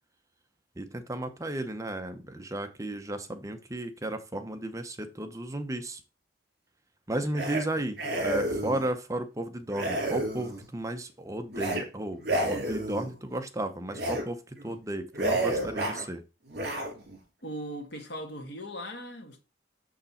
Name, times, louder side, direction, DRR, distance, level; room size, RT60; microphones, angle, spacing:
voice 1, 0.8-6.0 7.1-16.2, right 1 dB, 20° right, 0.8 m, -34 dB
sound 1, 7.3-7.6 8.0-8.9 9.7-10.7 11.5-11.8 12.2-13.1 13.9-14.2 14.6-14.8 15.1-16.0 16.5-17.2, right 1 dB, 60° right, 3.1 m, -30 dB
voice 2, 17.4-19.4, equal, 65° left, 1.8 m, -39 dB
6.8 x 6.5 x 4.2 m
head